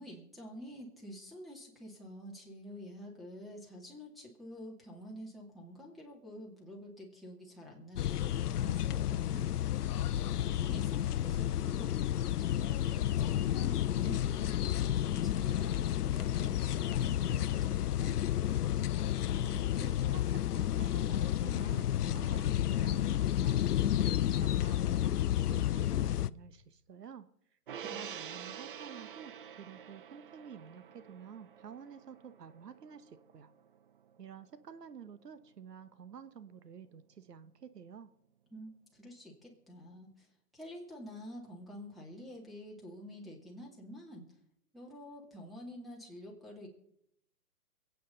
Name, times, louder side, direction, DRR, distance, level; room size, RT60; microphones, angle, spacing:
voice 1, 0.0-9.5 10.4-12.0 12.4-18.3 27.8-28.1 28.4-28.5 38.5-44.2 44.7-46.7, equal, ahead, -1 dB, 2.6 m, -48 dB
sound 1, 8.0-26.3, left 11 dB, 75° left, 0.6 m, -31 dB
voice 2, 19.3-27.3 27.8-33.5 34.2-38.1, right 7 dB, 85° right, 13 dB, 1.2 m, -50 dB
Gong, 27.7-34.3 34.6-34.8, right 8 dB, 35° right, 0.5 m, -48 dB
27.5 x 9.3 x 3.9 m, 0.75 s
hypercardioid pair, 145°, 47 cm